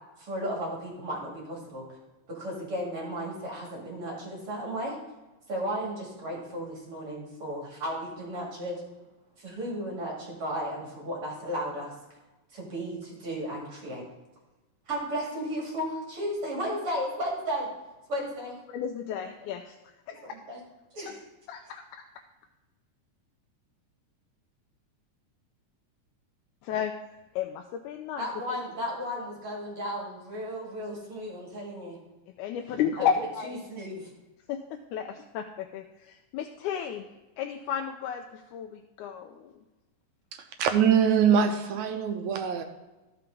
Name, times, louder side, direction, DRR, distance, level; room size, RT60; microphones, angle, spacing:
voice 1, 0.2-1.8 2.3-4.9 5.5-8.8 9.4-11.9 12.5-14.0 14.9-17.7 18.1-18.5 20.1-20.6 20.9-21.2 28.2-32.0 32.7-33.1 33.4-34.1, equal, 45° right, -3 dB, 3.0 m, -34 dB
voice 2, 18.7-19.8 20.1-20.2 21.1-21.2 21.5-22.0 26.6-26.9 27.4-28.6 32.4-33.6 34.5-37.1 37.4-39.5, left 8 dB, 80° left, 4 dB, 2.0 m, -33 dB
voice 3, 40.3-42.6, right 7 dB, 75° right, 6 dB, 1.8 m, -23 dB
13.5 x 5.8 x 3.8 m, 1.1 s
omnidirectional pair, 3.7 m